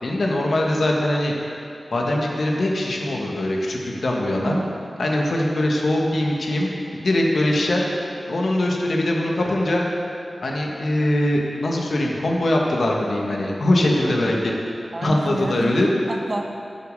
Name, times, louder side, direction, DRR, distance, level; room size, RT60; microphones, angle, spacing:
voice 1, 0.0-1.3 1.9-4.6 5.0-6.7 7.0-7.8 8.3-9.8 10.4-14.5 15.0-15.9, left 1 dB, 75° left, -1 dB, 1.5 m, -22 dB
voice 2, 4.4-4.8 14.1-14.2 14.9-16.4, right 2 dB, 40° right, 2 dB, 1.1 m, -29 dB
10.5 x 6.8 x 6.7 m, 2.6 s
wide cardioid pair, 70°, 0 cm